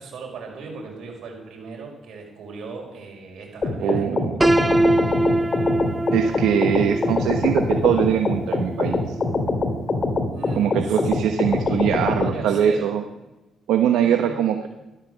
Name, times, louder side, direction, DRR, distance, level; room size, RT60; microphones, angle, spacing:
voice 1, 0.0-4.0 4.4-5.0 10.3-11.1 11.7-12.9 14.0-14.4, right 4 dB, 70° right, 1 dB, 5.6 m, -37 dB
sound 1, 3.6-12.3, left 3 dB, 35° left, 2.4 m, -24 dB
voice 2, 3.8-4.3 6.1-9.1 10.6-13.0 13.7-14.7, right 9 dB, 90° right, 6 dB, 1.0 m, -22 dB
Piano, 4.4-10.3, right 1 dB, 15° right, 0.5 m, -24 dB
14.5 x 12.5 x 7.0 m, 1.1 s
cardioid pair, 90°, 0 cm